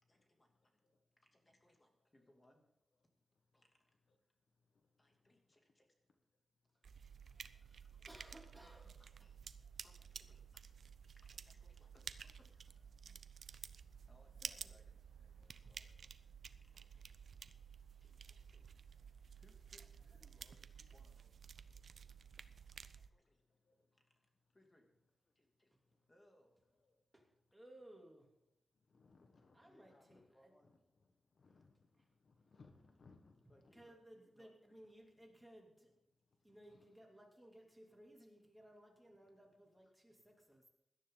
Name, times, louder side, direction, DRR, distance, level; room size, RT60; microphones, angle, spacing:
voice 1, 0.0-0.8 1.2-2.7 3.5-4.0 5.0-5.9 7.5-8.2 8.7-9.4 9.8-10.7 11.1-12.8 13.4-13.5 14.1-15.9 16.6-17.1 18.0-18.7 19.3-22.2 22.7-23.4 23.9-25.0 25.3-25.7 26.1-26.7 29.6-30.7 31.4-31.7 33.5-34.8 36.4-36.5 39.4-39.5 39.8-40.2, left 1 dB, 25° left, 2 dB, 2.7 m, -73 dB
sound 1, 6.8-23.1, right 6 dB, 65° right, 0.6 m, -53 dB
voice 2, 8.0-8.9 14.4-14.7 15.6-15.7 27.1-27.2 27.5-28.3 29.5-30.5 32.0-32.1 33.7-35.9 36.4-40.7, right 1 dB, 10° right, 0 dB, 3.1 m, -61 dB
voice 3, 28.9-30.3 30.6-30.7 31.4-31.7 32.2-33.4 36.7-36.8, left 4 dB, 60° left, 5 dB, 1.3 m, -65 dB
17.0 x 12.5 x 4.0 m, 0.80 s
wide cardioid pair, 95°, 0 cm